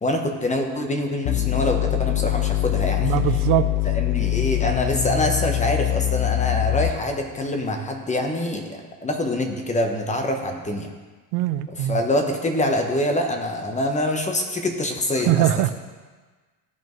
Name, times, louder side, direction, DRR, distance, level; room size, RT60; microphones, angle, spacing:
voice 1, 0.0-3.1 3.9-10.9 11.7-15.7, left 1 dB, 15° left, 4 dB, 1.0 m, -25 dB
sound 1, 1.3-7.2, left 15 dB, 75° left, 0.6 m, -23 dB
voice 2, 3.0-3.7 11.3-12.0 15.3-15.7, right 14 dB, 65° right, 12 dB, 0.6 m, -21 dB
14.5 x 5.2 x 3.1 m, 1.4 s
cardioid pair, 125°, 45 cm